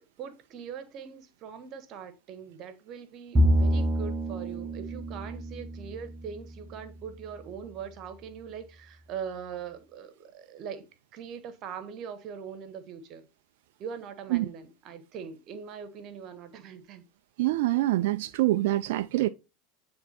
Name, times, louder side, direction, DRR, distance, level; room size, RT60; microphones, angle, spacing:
voice 1, 0.2-10.8 11.1-13.2 13.8-17.0, right 7 dB, 50° right, 1.1 m, -41 dB
Bowed string instrument, 3.3-6.8, equal, 20° right, 1.0 m, -27 dB
voice 2, 17.4-19.3, right 17 dB, 70° right, 0.3 m, -25 dB
8.8 x 3.5 x 4.2 m
hypercardioid pair, 100°, 0 cm